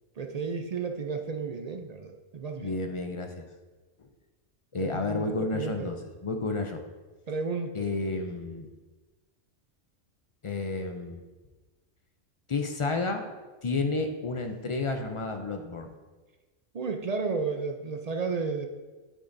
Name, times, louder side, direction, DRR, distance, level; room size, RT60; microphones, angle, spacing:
voice 1, 0.2-2.8 4.8-5.9 7.3-8.2 16.7-18.7, right 4 dB, 60° right, 5 dB, 0.4 m, -33 dB
voice 2, 2.6-3.5 4.7-6.8 7.7-8.7 10.4-11.2 12.5-13.3 13.6-15.9, left 3 dB, 55° left, 5 dB, 0.3 m, -31 dB
8.9 x 8.3 x 2.6 m, 1.3 s
omnidirectional pair, 1.3 m